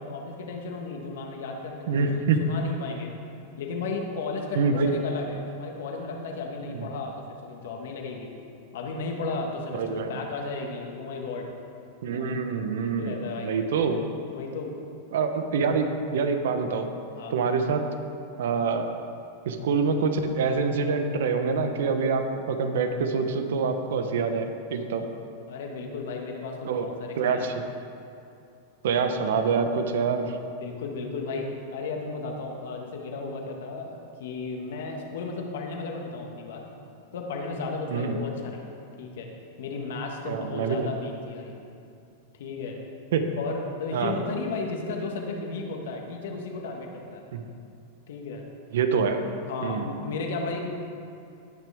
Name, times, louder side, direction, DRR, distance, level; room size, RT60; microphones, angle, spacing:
voice 1, 0.0-2.1 2.5-3.1 3.6-7.1 7.4-8.3 8.7-11.5 12.0-12.3 12.9-13.5 14.3-14.7 17.1-17.4 25.0-25.1 25.5-27.5 30.6-36.6 37.1-39.3 39.6-41.6 42.4-42.8 43.4-47.3 48.1-48.5 49.4-50.7, left 3 dB, 75° left, 1 dB, 1.7 m, -34 dB
voice 2, 1.9-2.4 4.6-5.0 6.7-6.9 9.7-10.1 12.0-13.1 13.4-14.0 15.1-15.9 16.1-16.9 17.3-17.9 18.4-18.9 19.4-25.0 26.6-26.9 27.2-27.5 28.8-30.3 37.9-38.2 40.3-41.0 43.1-43.3 43.9-44.1 47.3-47.4 48.7-49.2 49.6-49.9, right 5 dB, 75° right, 7 dB, 0.9 m, -25 dB
18.5 x 6.2 x 3.6 m, 2.5 s
hypercardioid pair, 120°, 0 cm